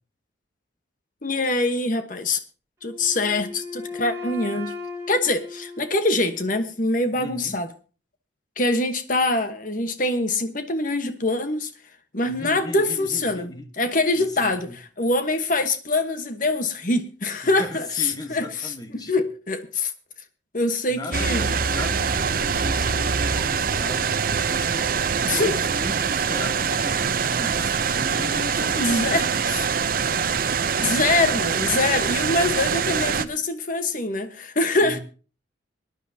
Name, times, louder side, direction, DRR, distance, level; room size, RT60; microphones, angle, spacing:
voice 1, 1.2-2.4 2.8-4.7 5.1-7.7 8.6-11.7 12.1-19.9 20.5-21.5 25.2-25.6 28.7-29.7 30.8-35.0, left 2 dB, 45° left, 1.2 m, -24 dB
Wind instrument woodwind instrument, 2.8-6.8, left 4 dB, 15° right, 3.2 m, -37 dB
voice 2, 7.1-7.6 12.2-13.7 14.2-14.8 17.6-19.1 20.9-24.2 24.5-24.9 25.4-29.4 34.8-35.0, left 1 dB, 20° left, 1.3 m, -37 dB
sound 1, 21.1-33.2, right 6 dB, 50° right, 0.6 m, -24 dB
24.0 x 10.0 x 2.8 m
head